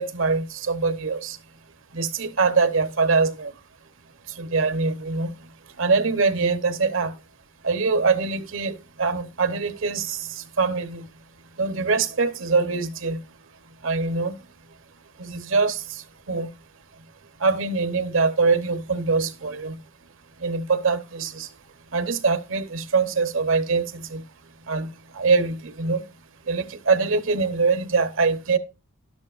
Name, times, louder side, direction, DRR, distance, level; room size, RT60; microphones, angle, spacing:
voice 1, 0.0-1.4 1.9-3.5 4.3-5.5 5.8-7.2 7.6-11.1 11.6-13.2 13.8-14.4 15.2-16.5 17.4-19.8 20.4-21.5 21.9-24.2 24.7-26.0 26.4-28.6, right 4 dB, 65° right, 1.0 m, -23 dB
12.5 x 11.5 x 2.5 m
head